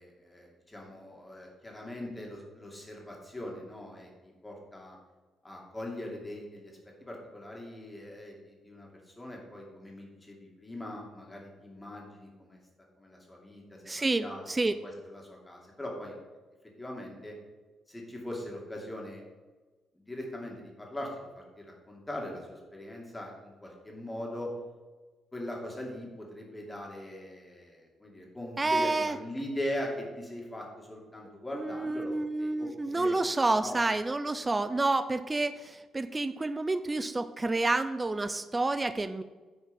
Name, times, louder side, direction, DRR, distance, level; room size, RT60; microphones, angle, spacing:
voice 1, 0.0-5.0 5.4-12.6 13.0-16.2 16.8-17.3 17.9-19.2 19.9-24.5 25.3-33.3 33.6-33.8, left 1 dB, 15° left, -1 dB, 2.4 m, -41 dB
voice 2, 13.9-14.7 28.6-29.2 31.5-39.2, right 2 dB, 20° right, 11 dB, 0.4 m, -29 dB
9.3 x 4.7 x 5.4 m, 1.3 s
cardioid pair, 90°, 0 cm